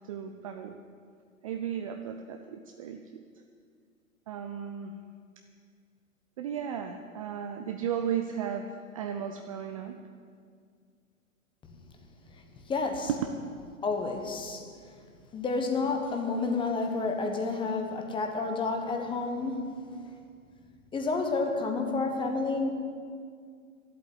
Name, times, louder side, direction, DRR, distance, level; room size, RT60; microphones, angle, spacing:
voice 1, 0.1-0.8 1.4-3.0 4.3-4.9 6.4-8.7 8.9-10.0 13.1-13.3, right 8 dB, 25° right, 5 dB, 0.5 m, -34 dB
voice 2, 12.6-13.1 13.8-14.6 15.3-19.7 20.9-22.7, left 3 dB, 10° left, 4 dB, 1.2 m, -30 dB
11.5 x 8.2 x 9.7 m, 2.1 s
figure-of-eight pair, 110°, 42 cm